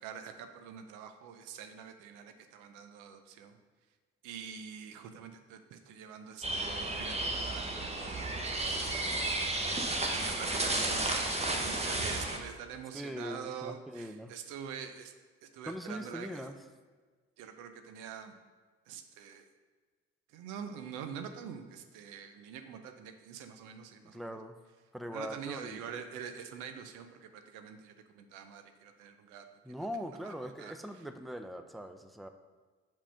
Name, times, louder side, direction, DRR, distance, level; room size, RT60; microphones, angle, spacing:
voice 1, 0.0-3.6 4.2-9.2 9.7-9.9 10.1-15.1 15.4-16.5 17.4-18.3 18.9-19.5 20.3-24.4 25.1-29.4 30.0-30.7, right 7 dB, 90° right, 7 dB, 0.5 m, -45 dB
sound 1, 6.4-12.4, right 2 dB, 20° right, 1.0 m, -33 dB
voice 2, 12.9-14.3 15.6-16.6 24.0-24.6 24.9-26.0 29.6-32.3, equal, ahead, 7 dB, 0.5 m, -41 dB
4.9 x 3.7 x 5.5 m, 1.4 s
supercardioid pair, 50°, 30 cm